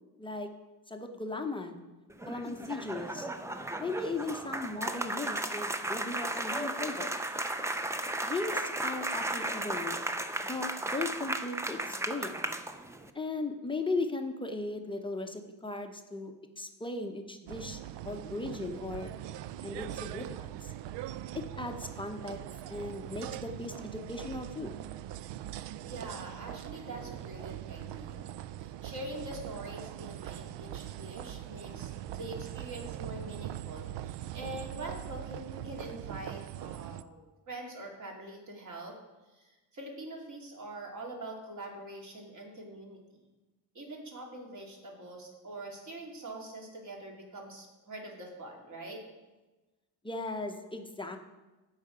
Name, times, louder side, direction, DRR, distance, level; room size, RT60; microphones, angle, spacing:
voice 1, 0.9-1.8 2.3-3.3 3.8-7.1 8.2-9.9 10.4-12.4 13.1-19.1 19.6-20.3 20.6-20.7 21.3-22.4 22.7-24.7 50.0-51.2, left 2 dB, 10° left, 4 dB, 0.7 m, -37 dB
sound 1, 2.1-13.1, right 1 dB, 10° right, 0.3 m, -35 dB
sound 2, 17.5-37.0, right 12 dB, 75° right, 0.5 m, -42 dB
voice 2, 25.8-39.0 39.3-43.0 43.7-49.1, right 1 dB, 40° right, -1 dB, 2.4 m, -44 dB
15.5 x 5.6 x 5.0 m, 1.1 s
cardioid pair, 140°, 43 cm